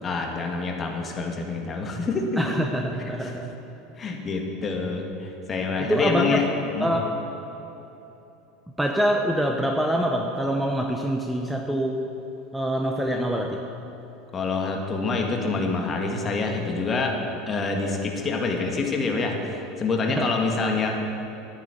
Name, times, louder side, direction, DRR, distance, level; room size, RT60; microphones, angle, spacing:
voice 1, 0.0-2.4 3.2-3.3 4.0-6.5 6.7-6.9 14.3-17.1 17.5-20.9, left 4 dB, 30° left, 2 dB, 2.0 m, -26 dB
voice 2, 2.4-3.5 5.8-6.4 6.8-7.1 8.8-12.0 12.5-13.6 20.2-20.3, equal, 5° right, 2 dB, 0.9 m, -25 dB
11.5 x 9.1 x 6.8 m, 3.0 s
figure-of-eight pair, 75°, 0 cm